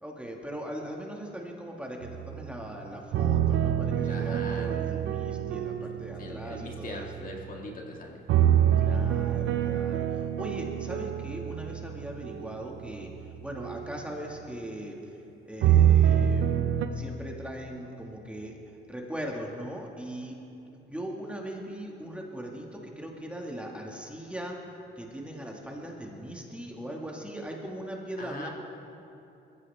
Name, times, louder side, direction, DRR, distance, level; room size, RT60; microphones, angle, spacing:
voice 1, 0.0-7.1 8.8-13.1 13.4-15.0 15.4-16.5 16.9-18.6 18.9-20.4 20.7-24.6 25.0-28.5, right 1 dB, 5° right, -1 dB, 2.1 m, -39 dB
sound 1, 2.0-2.7 3.1-7.6 8.3-14.0 15.6-16.9, right 10 dB, 80° right, 0.8 m, -26 dB
voice 2, 4.0-4.9 6.2-8.2 28.2-28.5, left 2 dB, 45° left, 0 dB, 2.3 m, -41 dB
21.0 x 15.5 x 3.6 m, 2.8 s
cardioid pair, 90°, 20 cm